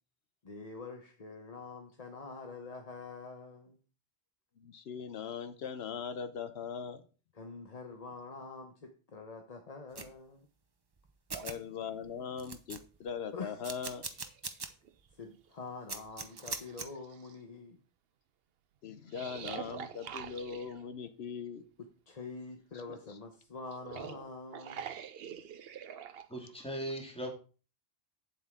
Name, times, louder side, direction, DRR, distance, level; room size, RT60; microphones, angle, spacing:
voice 1, 0.4-3.8 7.3-10.5 13.3-13.7 15.2-17.8 21.8-24.9 25.4-25.5, left 4 dB, 40° left, 1.0 m, -46 dB
voice 2, 4.6-7.0 11.4-14.1 18.8-21.6 22.9-23.0, left 6 dB, 75° left, 1.0 m, -40 dB
sound 1, 10.0-10.1 11.0-11.1 11.3-11.6 12.0-12.1 12.4-13.1 13.6-14.7 15.1-15.2 15.9-16.9, right 4 dB, 25° right, 0.6 m, -40 dB
sound 2, 11.3-11.5 13.3-13.4 13.9-14.9 15.5-15.6 16.2-17.3 19.1-20.9 23.7-26.3, right 8 dB, 70° right, 0.9 m, -45 dB
voice 3, 26.3-27.3, right 1 dB, 5° left, 2.1 m, -38 dB
8.2 x 7.8 x 3.7 m
omnidirectional pair, 1.1 m